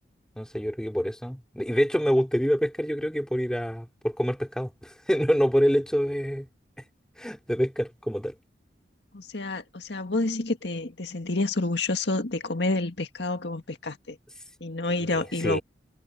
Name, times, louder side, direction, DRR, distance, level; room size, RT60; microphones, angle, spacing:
voice 1, 0.4-6.5 7.2-8.3 15.0-15.6, equal, 5° left, 2.8 m, -26 dB
voice 2, 9.1-14.2 14.6-15.6, left 2 dB, 70° left, 1.9 m, -29 dB
head